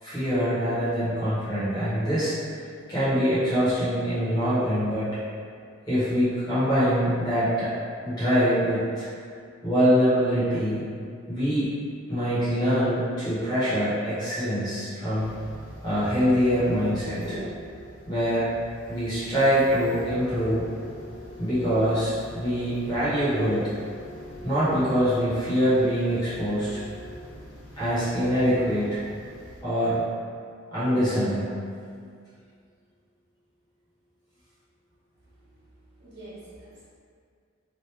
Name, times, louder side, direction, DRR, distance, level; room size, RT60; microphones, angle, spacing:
voice 1, 0.0-2.3 2.9-5.1 5.9-7.7 8.0-9.1 9.6-10.8 11.3-11.7 12.1-15.3 15.8-17.4 18.1-18.5 18.9-20.7 21.4-23.6 24.4-26.8 27.8-29.0 29.6-30.0 30.7-31.5, equal, 20° left, -13 dB, 1.1 m, -24 dB
sound 1, 15.2-29.6, equal, 65° left, 1.0 m, -43 dB
voice 2, 35.3-35.7 36.0-36.8, right 1 dB, 50° right, -11 dB, 1.2 m, -47 dB
3.0 x 2.6 x 3.3 m, 2.2 s
head